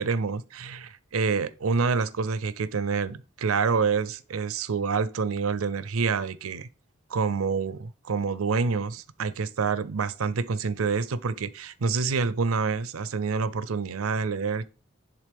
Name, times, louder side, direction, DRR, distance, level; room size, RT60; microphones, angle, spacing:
voice 1, 0.0-6.7 7.1-14.7, right 5 dB, 85° right, 0.6 m, -27 dB
10.5 x 3.6 x 3.5 m
head